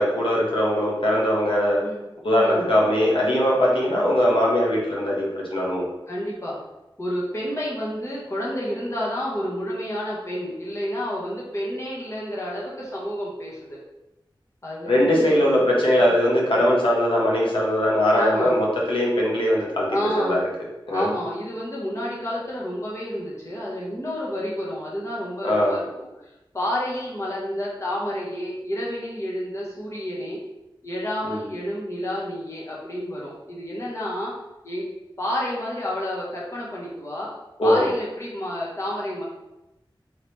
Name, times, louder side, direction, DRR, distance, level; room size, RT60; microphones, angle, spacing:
voice 1, 0.0-1.8 2.2-5.8 14.8-19.9 20.2-20.4 20.9-21.1 25.4-25.8 31.2-31.4 37.6-37.9, equal, 75° left, -4 dB, 1.1 m, -20 dB
voice 2, 2.3-2.8 6.1-6.6 7.0-13.8 14.6-15.7 16.0-16.1 18.1-18.6 19.9-20.4 20.9-30.4 30.8-34.3 34.6-34.9 35.2-37.3 37.6-39.2, equal, 35° left, -5 dB, 1.3 m, -30 dB
3.8 x 3.0 x 3.3 m, 0.94 s
wide cardioid pair, 70°, 9 cm